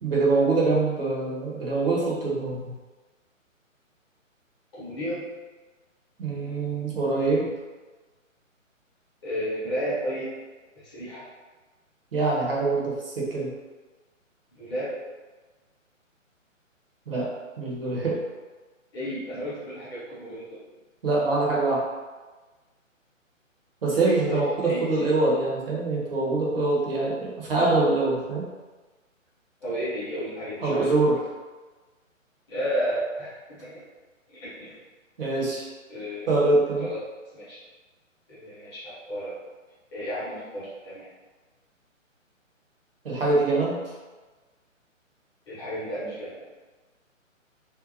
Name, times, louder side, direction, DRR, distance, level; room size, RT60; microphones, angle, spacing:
voice 1, 0.0-2.7 6.2-7.5 12.1-13.5 17.1-18.2 21.0-21.8 23.8-28.5 30.6-31.2 35.2-35.7 36.3-36.9 43.0-43.9, right 3 dB, 45° right, -4 dB, 0.6 m, -24 dB
voice 2, 4.7-5.3 9.2-10.3 10.8-11.3 14.5-14.9 18.9-20.4 24.0-25.1 29.6-30.9 32.5-33.8 34.3-34.8 35.9-36.3 36.8-37.0 37.3-37.6 38.3-39.3 39.9-41.1 45.5-46.4, equal, 20° left, -11 dB, 0.7 m, -32 dB
2.6 x 2.1 x 2.5 m, 1.3 s
figure-of-eight pair, 135°, 40 cm